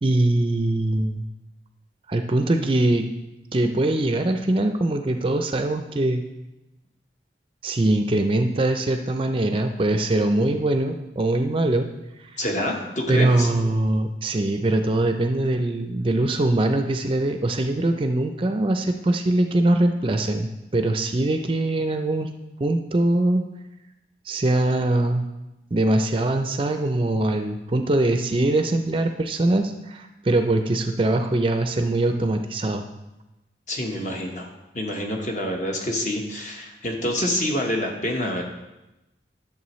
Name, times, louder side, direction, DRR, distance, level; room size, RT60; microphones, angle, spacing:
voice 1, 0.0-1.2 2.1-3.1 3.5-6.2 7.6-11.9 12.2-12.3 13.1-22.3 22.6-23.4 24.3-25.3 25.7-32.8, right 2 dB, 30° right, 6 dB, 0.4 m, -22 dB
voice 2, 12.4-13.5 33.7-34.5 34.7-38.4, left 1 dB, 45° left, 1 dB, 1.2 m, -27 dB
11.0 x 6.8 x 3.1 m, 0.98 s
head